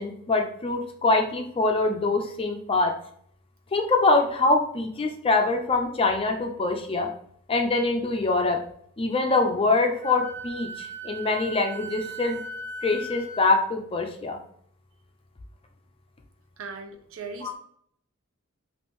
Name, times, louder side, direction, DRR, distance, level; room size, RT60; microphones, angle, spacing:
voice 1, 0.0-2.9 3.7-7.1 7.5-8.6 9.0-12.4 12.8-14.4 17.4-17.5, left 3 dB, 25° left, 4 dB, 0.4 m, -24 dB
Wind instrument woodwind instrument, 10.0-13.5, right 2 dB, 35° right, 1.0 m, -38 dB
voice 2, 16.6-17.6, right 4 dB, 65° right, 4 dB, 0.5 m, -38 dB
2.8 x 2.5 x 3.5 m, 0.63 s
head